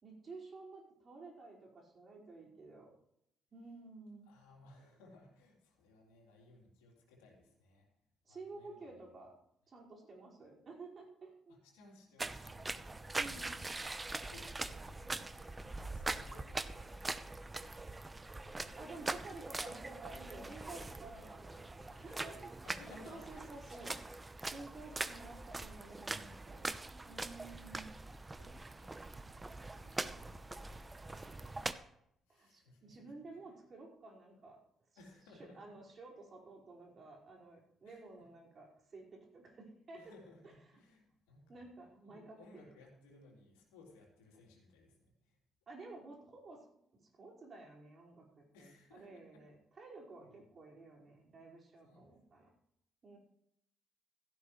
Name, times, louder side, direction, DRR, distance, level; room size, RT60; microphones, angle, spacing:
voice 1, 0.0-2.9 3.5-4.3 8.2-9.3 9.7-11.6 13.2-13.5 18.7-22.5 23.1-23.9 24.5-26.6 27.1-27.9 31.2-31.4 32.3-34.6 35.5-40.1 41.5-42.6 45.7-46.6 46.9-52.5 53.0-53.2, right 3 dB, 45° right, -2 dB, 5.1 m, -52 dB
voice 2, 4.2-7.9 8.3-9.0 11.5-13.6 14.1-15.5 15.8-19.5 21.9-24.0 28.0-29.5 29.8-30.5 31.0-31.7 32.3-33.5 35.0-35.8 37.8-38.3 39.9-41.7 42.1-45.4 48.5-49.5 50.2-50.5 51.8-52.1, left 2 dB, 75° left, -1 dB, 3.5 m, -61 dB
sound 1, 12.2-31.7, right 2 dB, 20° right, 0.9 m, -43 dB
16.5 x 13.5 x 3.3 m, 0.76 s
figure-of-eight pair, 45°, 0 cm